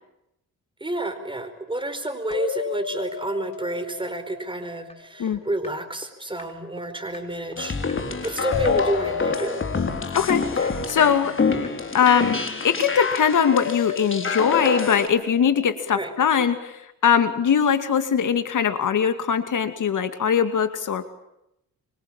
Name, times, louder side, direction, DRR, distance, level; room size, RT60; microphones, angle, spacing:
voice 1, 0.8-9.6 10.6-10.7 15.9-16.1, right 1 dB, 15° right, 8 dB, 4.8 m, -30 dB
sound 1, 2.3-5.3 8.4-11.7 13.4-16.2, left 9 dB, 80° left, 1.7 m, -33 dB
sound 2, 4.9-5.0 5.3-5.4 5.6-5.7 6.0-6.1 6.4-6.5 6.8-6.9 7.1-7.2 7.5-7.6 7.9-8.0 8.3-8.4 8.6-8.7 9.0-9.1 9.4-9.5 9.8-9.9 10.1-10.2 10.5-10.6 10.9-11.0 11.3-11.4 11.6-11.7 12.0-12.1 12.4-12.5 12.8-12.9 13.1-13.2 13.5-13.6 13.9-14.0 14.3-14.4 14.6-14.7, left 2 dB, 20° left, 5.0 m, -40 dB
sound 3, 7.6-15.1, left 4 dB, 35° left, 3.8 m, -27 dB
voice 2, 10.1-11.3 11.9-21.1, left 7 dB, 65° left, 10 dB, 2.4 m, -21 dB
25.5 x 24.5 x 8.9 m, 0.82 s
cardioid pair, 85°, 34 cm